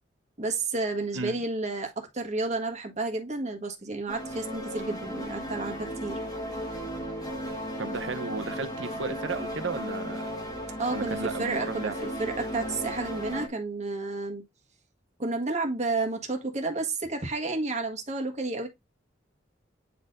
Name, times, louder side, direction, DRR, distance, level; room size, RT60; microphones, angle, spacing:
voice 1, 0.4-6.2 10.8-11.9 12.2-14.4 15.2-18.7, right 3 dB, 40° right, 1.5 m, -31 dB
sound 1, 4.1-13.5, equal, 20° left, 1.4 m, -35 dB
voice 2, 7.8-10.3 10.9-11.9, right 4 dB, 80° right, 0.8 m, -34 dB
9.2 x 4.2 x 2.6 m
head